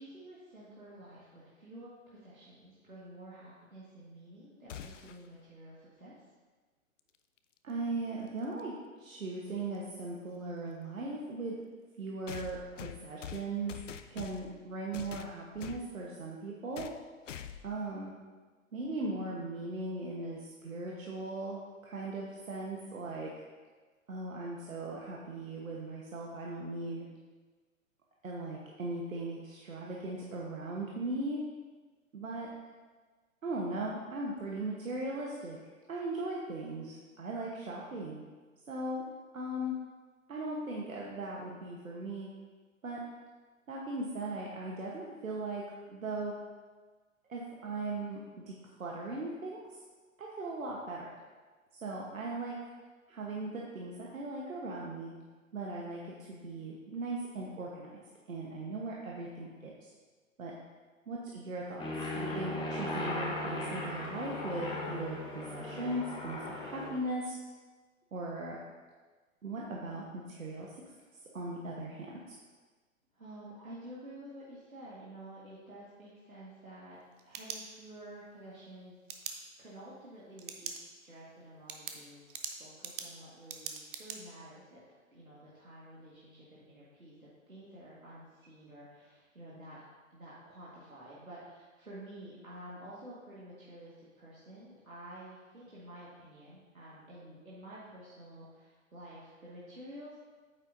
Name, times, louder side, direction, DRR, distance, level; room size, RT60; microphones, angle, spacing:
voice 1, 0.0-6.2 73.1-79.0 79.6-82.3 82.6-84.8 85.1-89.8 90.1-100.2, right 1 dB, 90° right, -8 dB, 1.9 m, -50 dB
sound 1, 4.7-5.3 7.4-7.5 8.6-8.7 12.3-14.6 14.9-15.9 16.7-17.0 17.3-17.7, left 9 dB, 60° left, 0.6 m, -45 dB
voice 2, 7.6-8.7 9.0-11.5 12.0-13.7 14.1-16.9 17.6-18.1 18.7-23.3 24.1-27.1 28.2-31.4 32.1-32.5 33.4-35.6 35.9-38.2 38.7-39.0 39.3-39.7 40.3-42.3 42.8-43.0 43.7-45.6 45.9-46.3 47.3-48.2 48.5-49.6 50.2-51.1 51.8-52.6 53.1-55.1 55.5-58.0 58.3-59.7 60.4-60.5 61.1-67.4 68.1-68.6 69.4-70.7 71.3-72.3, right 2 dB, 75° right, -3 dB, 1.3 m, -38 dB
Aircraft, 61.8-66.9, left 1 dB, 10° left, 1.0 m, -37 dB
sound 2, 76.9-78.1 79.1-79.3 80.4-80.8 81.2-81.3 81.7-84.2, right 7 dB, 40° right, 0.8 m, -42 dB
9.1 x 7.7 x 2.7 m, 1.4 s
figure-of-eight pair, 120°, 41 cm